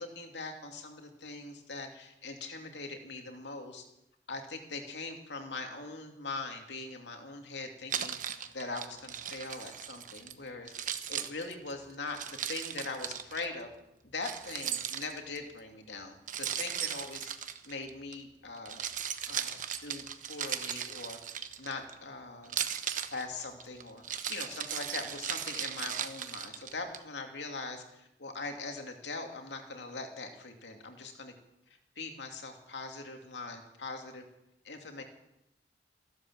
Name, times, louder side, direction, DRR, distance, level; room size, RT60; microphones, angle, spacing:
voice 1, 0.0-3.9 4.3-8.2 8.5-10.7 11.1-13.7 14.0-18.8 19.3-21.2 21.6-22.6 23.1-31.3 32.0-34.2 34.6-35.0, left 3 dB, 85° left, 4 dB, 2.6 m, -41 dB
Keys jangling, 7.9-10.3 10.7-13.4 14.2-15.4 16.3-18.1 18.6-21.9 22.4-27.0, right 9 dB, 50° right, 1.0 m, -37 dB
15.0 x 12.0 x 7.6 m, 0.86 s
head